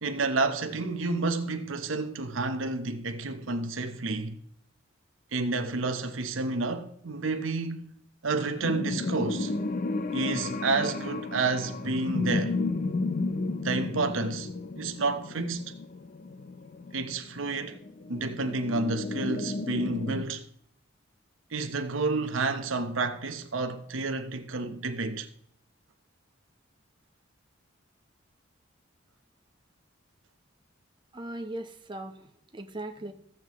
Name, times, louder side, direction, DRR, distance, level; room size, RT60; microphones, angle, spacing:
voice 1, 0.0-4.4 5.3-7.9 8.2-9.5 10.1-12.6 13.6-14.5 14.8-15.7 16.9-17.8 18.1-20.5 21.5-25.3, right 3 dB, 90° right, 0.8 m, -30 dB
sound 1, 8.6-20.2, left 3 dB, 45° left, 0.5 m, -33 dB
voice 2, 31.1-33.1, right 1 dB, 25° right, 0.9 m, -39 dB
14.5 x 7.4 x 3.0 m
head